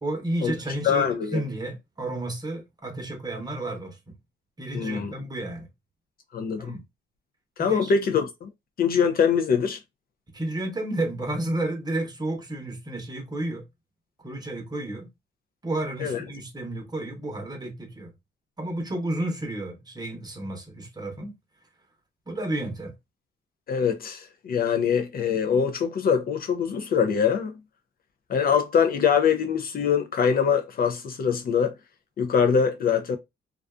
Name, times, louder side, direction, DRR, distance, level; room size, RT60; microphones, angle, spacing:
voice 1, 0.0-4.0 4.6-5.7 6.6-6.8 7.6-7.9 10.3-13.6 14.2-15.1 15.6-18.1 18.6-21.3 22.3-22.9, right 1 dB, 20° right, 0.9 m, -31 dB
voice 2, 0.8-1.4 4.7-5.1 6.3-6.8 7.6-8.5 8.8-9.8 16.0-16.2 23.7-27.5 28.3-31.7 32.2-33.2, left 7 dB, 50° left, 0.4 m, -23 dB
2.5 x 2.3 x 2.3 m
cardioid pair, 90°, 20 cm